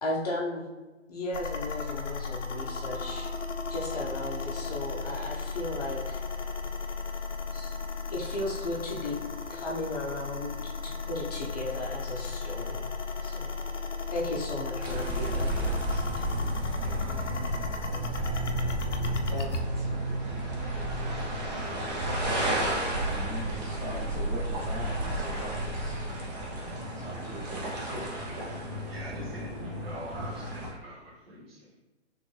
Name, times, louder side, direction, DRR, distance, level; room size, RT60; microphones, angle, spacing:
voice 1, 0.0-0.7 1.1-3.3 3.7-6.2 7.5-7.7 8.1-9.1 9.5-12.8 13.2-13.5 14.1-16.1, left 1 dB, 30° left, -3 dB, 0.7 m, -35 dB
sound 1, 1.3-19.6, left 4 dB, 70° left, 0.6 m, -35 dB
sound 2, 14.8-30.7, right 1 dB, 35° right, 1.0 m, -32 dB
voice 2, 19.3-19.9 22.2-26.1 26.9-28.3, right 1 dB, 5° right, -9 dB, 1.0 m, -40 dB
voice 3, 28.9-31.8, equal, 50° right, -4 dB, 1.5 m, -43 dB
4.1 x 3.2 x 3.2 m, 1.2 s
figure-of-eight pair, 130°, 37 cm